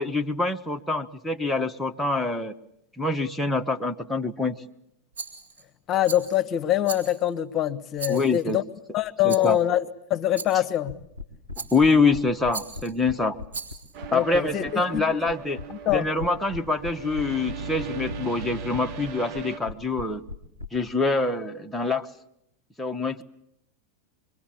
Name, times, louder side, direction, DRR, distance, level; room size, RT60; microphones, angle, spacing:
voice 1, 0.0-2.5 3.0-4.6 8.1-8.6 9.2-9.6 11.7-13.4 14.1-15.6 15.9-20.2 20.7-22.1 22.8-23.2, left 3 dB, 5° left, 2 dB, 1.0 m, -25 dB
Rattle, 5.1-5.6 6.0-6.4 6.8-7.4 8.0-8.5 9.3-9.6 10.3-10.8 11.5-12.0 12.5-12.9 13.5-14.0, right 5 dB, 70° right, 4.6 m, -38 dB
voice 2, 5.9-8.6 8.9-11.0 14.1-15.0 15.7-16.1, left 12 dB, 30° left, 10 dB, 1.1 m, -24 dB
sound 1, 10.9-20.7, left 4 dB, 90° right, 2.7 m, -38 dB
sound 2, 13.9-19.6, right 6 dB, 40° right, 1.2 m, -38 dB
25.5 x 23.0 x 8.7 m, 0.77 s
figure-of-eight pair, 90°, 0 cm